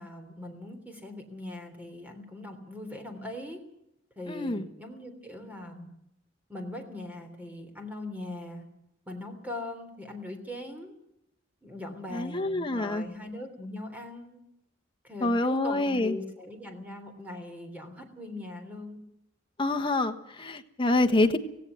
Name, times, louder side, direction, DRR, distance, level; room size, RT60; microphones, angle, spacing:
voice 1, 0.0-3.6 4.2-5.9 6.5-8.6 9.0-10.9 11.6-14.4 15.0-19.0, left 1 dB, 10° right, 5 dB, 3.4 m, -40 dB
voice 2, 4.3-4.6 12.1-13.0 15.2-16.2 19.6-21.4, left 2 dB, 25° left, 7 dB, 1.3 m, -26 dB
17.0 x 16.5 x 9.4 m, 0.81 s
head